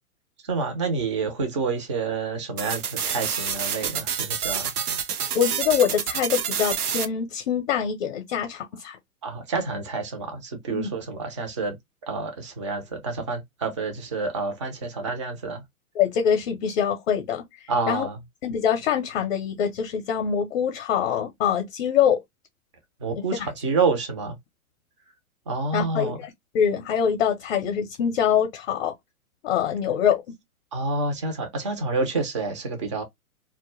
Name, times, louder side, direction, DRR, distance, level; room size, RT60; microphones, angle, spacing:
voice 1, 0.4-4.7 9.2-11.8 12.1-15.6 17.7-18.2 23.0-24.4 25.5-26.2 30.7-33.0, right 4 dB, 25° right, 0.3 m, -28 dB
sound 1, 2.6-7.1, right 8 dB, 90° right, 0.6 m, -28 dB
voice 2, 5.3-9.0 10.7-10.9 15.9-17.4 17.9-18.1 18.4-22.2 23.4-23.5 25.7-28.9 29.4-30.2, left 8 dB, 45° left, 0.6 m, -24 dB
2.1 x 2.0 x 3.0 m
hypercardioid pair, 125°, 44 cm